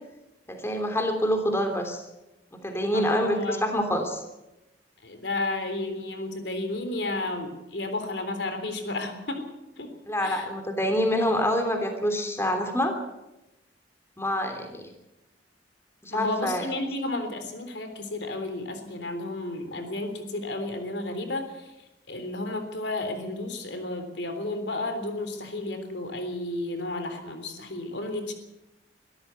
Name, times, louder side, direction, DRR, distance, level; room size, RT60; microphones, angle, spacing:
voice 1, 0.5-2.0 2.6-4.2 10.1-13.0 14.2-14.8 16.0-16.6, equal, 15° left, 5 dB, 3.2 m, -26 dB
voice 2, 2.9-3.7 5.0-9.4 9.8-9.9 10.2-10.5 16.1-21.7 22.1-28.3, left 2 dB, 75° left, 7 dB, 3.5 m, -32 dB
23.0 x 14.0 x 8.3 m, 0.94 s
head